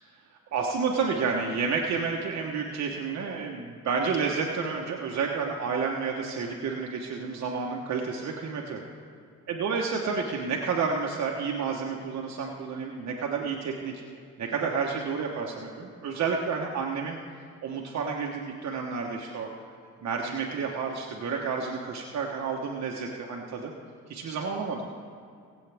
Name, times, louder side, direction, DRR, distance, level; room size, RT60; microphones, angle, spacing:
voice 1, 0.5-8.8 9.5-13.9 14.4-17.2 17.6-19.5 20.0-23.7 24.1-24.9, right 5 dB, 65° right, 0 dB, 1.2 m, -30 dB
22.0 x 8.3 x 3.5 m, 2.4 s
cardioid pair, 90°, 30 cm